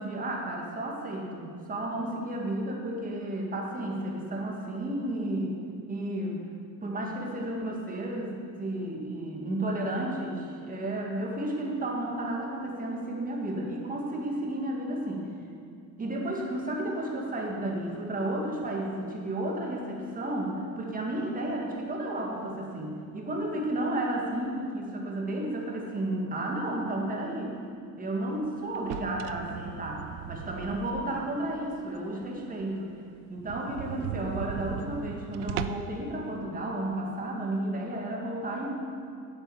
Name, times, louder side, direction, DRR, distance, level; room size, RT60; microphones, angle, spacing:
voice 1, 0.0-5.6 5.9-6.5 6.8-15.3 16.0-27.6 28.0-32.9 33.3-38.7, right 1 dB, 15° right, -1 dB, 2.0 m, -32 dB
sound 1, 28.7-31.3 31.7-31.8 32.2-32.3 32.6-32.7 33.0-33.1 33.4-36.0, right 10 dB, 70° right, 0.7 m, -37 dB
8.5 x 7.9 x 7.2 m, 2.3 s
supercardioid pair, 115°, 48 cm